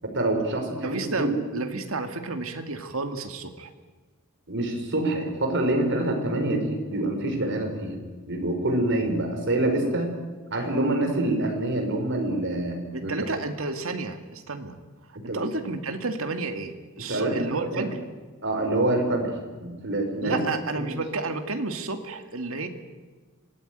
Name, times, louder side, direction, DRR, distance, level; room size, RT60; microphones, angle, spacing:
voice 1, 0.0-1.3 4.5-8.0 8.3-10.1 10.5-13.1 15.1-15.6 17.1-17.9 18.4-19.3 19.6-20.4 20.7-20.9, right 1 dB, 60° right, 4 dB, 5.1 m, -26 dB
voice 2, 0.8-3.7 12.9-14.8 15.1-18.0 20.2-22.7, right 3 dB, 75° right, 7 dB, 2.3 m, -31 dB
26.0 x 18.0 x 9.3 m, 1.3 s
head